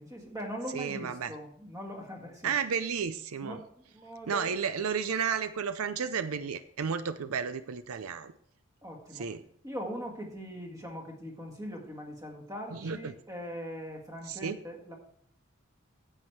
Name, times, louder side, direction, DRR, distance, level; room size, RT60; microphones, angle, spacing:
voice 1, 0.0-2.5 3.4-4.5 8.8-9.3 9.6-14.9, equal, 15° right, 2 dB, 1.8 m, -41 dB
voice 2, 0.7-1.3 2.4-3.6 4.3-8.3 9.1-9.4 12.7-13.1 14.3-14.6, right 6 dB, 85° right, 12 dB, 0.5 m, -32 dB
9.8 x 7.9 x 4.6 m, 0.65 s
head